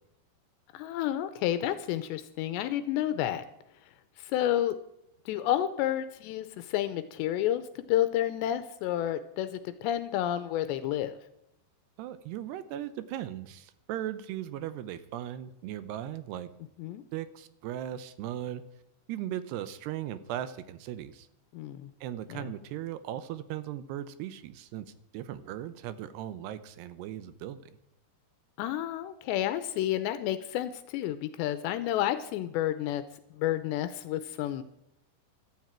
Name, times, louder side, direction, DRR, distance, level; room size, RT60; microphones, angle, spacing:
voice 1, 0.7-3.4 4.2-4.8 5.3-11.2 16.8-17.0 21.5-21.9 22.3-22.5 28.6-33.0 33.4-34.6, left 12 dB, 85° left, 12 dB, 2.9 m, -30 dB
voice 2, 12.0-16.5 17.1-18.6 19.1-21.3 22.0-24.9 25.1-27.7, right 11 dB, 75° right, 13 dB, 2.9 m, -38 dB
16.5 x 12.5 x 4.5 m, 0.80 s
omnidirectional pair, 5.1 m